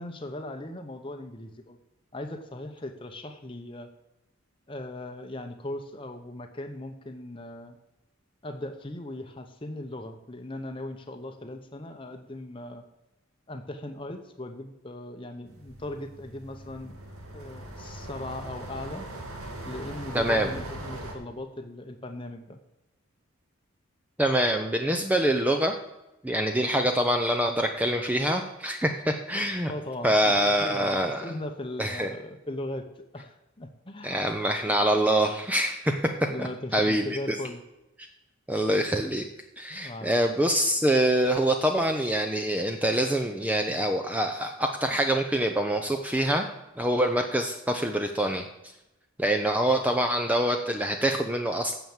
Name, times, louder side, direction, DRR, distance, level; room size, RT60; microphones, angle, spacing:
voice 1, 0.0-1.8 2.1-3.9 4.7-7.8 8.4-12.8 13.5-17.0 17.3-19.0 19.6-22.6 29.6-30.9 31.2-34.3 36.3-37.6 39.7-40.1, left 1 dB, 25° left, 4 dB, 0.8 m, -38 dB
sound 1, 15.4-21.1, right 1 dB, 85° right, 2.3 m, -40 dB
voice 2, 20.1-20.5 24.2-25.7 26.2-29.7 30.0-31.2 31.8-32.1 34.0-35.9 36.4-36.5 36.7-37.4 38.5-39.3 39.6-46.5 46.8-48.5 49.2-51.8, right 1 dB, 5° right, 4 dB, 0.6 m, -25 dB
9.3 x 7.2 x 7.2 m, 0.94 s
head